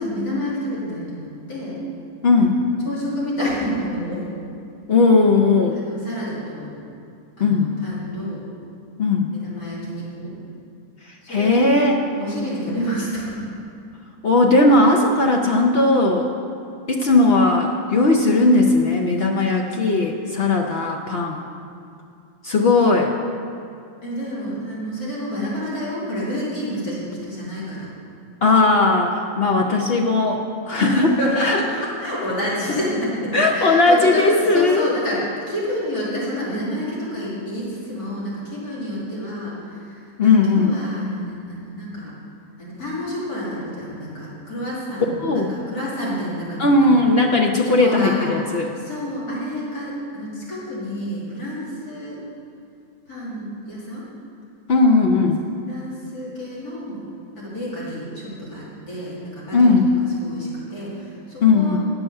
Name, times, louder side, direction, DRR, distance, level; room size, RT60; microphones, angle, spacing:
voice 1, 0.0-1.8 2.4-2.5 2.9-4.2 5.7-6.7 7.4-8.4 9.3-10.3 11.2-11.8 12.2-13.4 24.0-27.9 30.9-34.3 34.5-35.2 35.5-42.1 42.6-47.0 47.6-52.2 53.1-54.0 55.7-57.0 57.3-59.7 60.1-61.8, equal, 90° left, -7 dB, 3.2 m, -29 dB
voice 2, 2.2-2.5 4.9-5.8 7.4-7.7 9.0-9.3 11.3-12.0 14.2-16.3 16.9-21.4 22.4-23.1 28.4-31.1 31.4-31.6 33.3-34.9 40.2-40.7 45.2-45.5 46.6-48.6 54.7-55.4 59.5-59.9 61.4-61.8, left 3 dB, 50° left, 1 dB, 0.8 m, -17 dB
10.5 x 7.1 x 6.6 m, 2.5 s
omnidirectional pair, 1.6 m